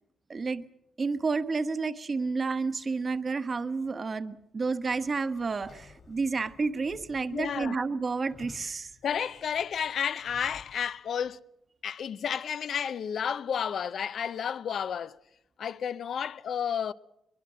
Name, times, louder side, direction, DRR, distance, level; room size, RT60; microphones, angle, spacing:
voice 1, 0.3-0.6 1.0-8.9, right 4 dB, 35° right, 1.2 m, -30 dB
Sliding door / Squeak, 4.8-10.9, left 4 dB, 50° left, 2.8 m, -55 dB
voice 2, 7.3-7.8 9.0-11.4 11.8-15.2 15.6-16.9, left 8 dB, 65° left, 0.8 m, -31 dB
22.5 x 22.5 x 6.3 m
cardioid pair, 110°, 0 cm